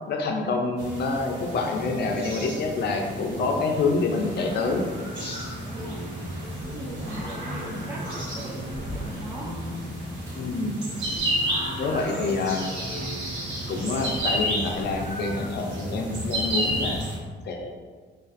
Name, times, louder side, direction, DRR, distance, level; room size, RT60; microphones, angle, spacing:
voice 1, 0.1-4.9 5.2-5.4 10.3-10.8 11.8-12.7 13.7-17.0 17.4-17.7, left 3 dB, 55° left, 2 dB, 0.4 m, -27 dB
sound 1, 0.8-17.2, equal, 65° right, 1.0 m, -32 dB
sound 2, 3.2-11.9 12.1-14.9 15.6-15.8, right 1 dB, 90° right, 0.8 m, -44 dB
sound 3, 4.1-15.5, equal, 45° right, 1.5 m, -42 dB
voice 2, 5.6-6.1 6.6-9.6 12.1-12.4, right 1 dB, 15° right, -3 dB, 0.4 m, -40 dB
2.4 x 2.3 x 2.4 m, 1.5 s
cardioid pair, 90°, 20 cm